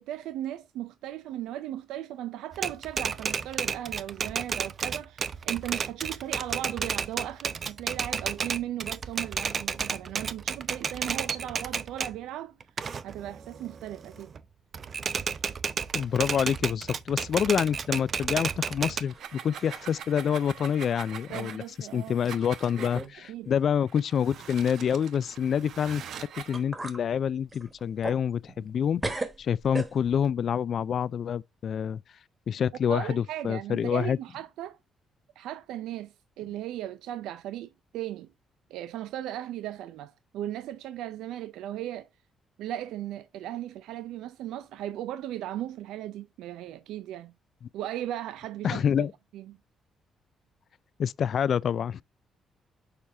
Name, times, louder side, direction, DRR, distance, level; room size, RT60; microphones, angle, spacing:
voice 1, 0.0-12.6 13.0-14.3 21.3-22.2 23.1-23.5 32.9-34.8 35.4-38.3 38.7-42.1 42.6-47.3 47.7-48.9 49.3-49.6, right 12 dB, 90° right, 0.4 m, -37 dB
Typewriter, 2.5-12.2 12.6-14.4 14.7-19.0, right 6 dB, 45° right, 0.6 m, -32 dB
voice 2, 15.9-32.0 32.5-34.2 48.6-49.1 51.0-52.0, left 8 dB, 60° left, 0.3 m, -27 dB
sound 1, 18.5-19.3 19.5-20.0 20.5-20.6 21.4-21.5 22.3-22.4 22.8-23.2 23.4-23.6 26.1-26.2 26.5-27.0 27.5-28.8 29.0-30.3, right 2 dB, 20° right, 1.5 m, -37 dB
sound 2, 19.0-23.1 23.9-26.6, right 8 dB, 70° right, 0.9 m, -43 dB
6.7 x 4.2 x 3.4 m
cardioid pair, 90°, 0 cm